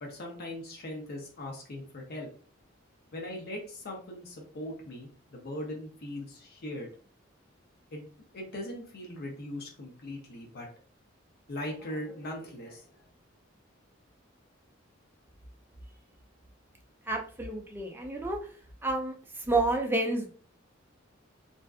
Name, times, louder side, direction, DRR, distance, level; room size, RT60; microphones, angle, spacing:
voice 1, 0.0-2.3 3.1-6.9 7.9-8.0 8.3-10.7 11.5-13.0, left 1 dB, 55° left, 1 dB, 0.6 m, -40 dB
voice 2, 17.1-18.4 18.8-19.1 19.5-20.3, right 2 dB, 10° right, 1 dB, 0.4 m, -29 dB
2.5 x 2.3 x 2.3 m, 0.43 s
head